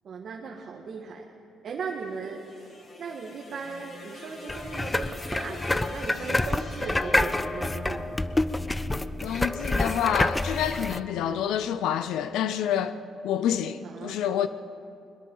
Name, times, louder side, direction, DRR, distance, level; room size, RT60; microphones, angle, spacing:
voice 1, 0.0-1.3 1.6-2.7 3.0-8.3 11.2-11.5 13.8-14.4, right 5 dB, 60° right, 1.7 m, -38 dB
sound 1, 1.8-10.1, left 3 dB, 50° left, 3.6 m, -45 dB
sound 2, 4.5-11.0, left 2 dB, 15° left, 0.6 m, -28 dB
voice 2, 9.2-13.0 13.2-14.5, left 9 dB, 85° left, 0.6 m, -28 dB
22.5 x 21.5 x 5.6 m
cardioid pair, 90°, 0 cm